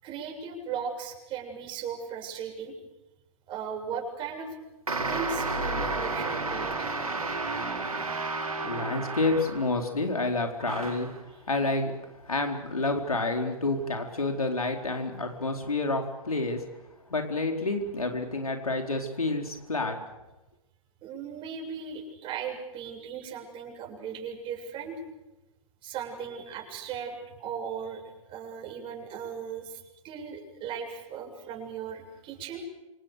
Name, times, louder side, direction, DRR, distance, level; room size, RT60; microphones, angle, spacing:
voice 1, 0.0-2.8 3.5-4.5 5.1-6.9 7.6-7.8 21.0-25.0 25.8-28.0 28.3-32.7, right 6 dB, 30° right, 2 dB, 7.4 m, -37 dB
sound 1, 4.9-9.9 10.6-11.2, right 3 dB, 90° right, 4.9 m, -32 dB
voice 2, 8.6-12.0 12.2-16.6 17.1-20.0, left 2 dB, 90° left, 3 dB, 4.4 m, -29 dB
28.0 x 26.5 x 6.7 m, 1.0 s
figure-of-eight pair, 120°, 18 cm